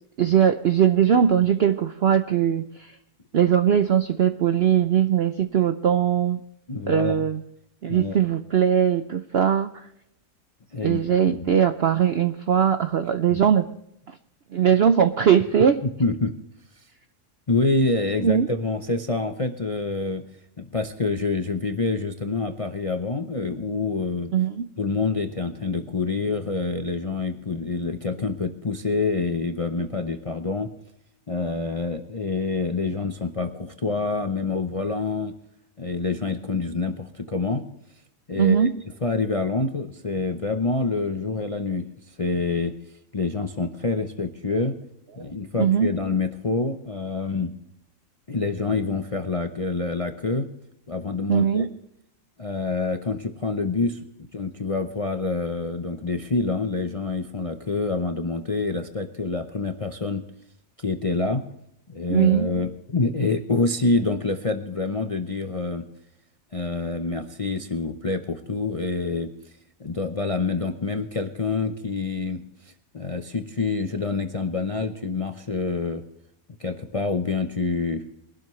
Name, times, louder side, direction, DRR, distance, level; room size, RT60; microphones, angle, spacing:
voice 1, 0.2-3.0 3.3-6.4 6.9-7.4 7.8-9.9 10.8-13.7 14.1-14.2 14.5-15.8 18.2-18.5 24.3-24.7 38.4-38.8 45.2-45.3 45.6-45.9 51.3-51.7 62.1-62.5, right 8 dB, 65° right, 9 dB, 0.6 m, -20 dB
voice 2, 6.7-7.2 7.9-8.1 10.7-11.0 11.3-11.6 13.3-13.4 15.8-16.4 17.5-20.2 20.6-24.3 24.8-30.7 31.3-35.3 35.8-37.6 38.3-38.7 39.0-41.9 42.2-42.7 43.1-44.8 45.2-47.5 48.3-50.5 50.9-51.7 52.4-54.0 54.3-60.2 60.8-61.4 61.9-65.9 66.5-69.3 69.8-72.4 72.9-76.0 76.6-78.0, left 3 dB, 35° left, 6 dB, 0.5 m, -26 dB
22.5 x 12.0 x 3.1 m, 0.78 s
omnidirectional pair, 1.7 m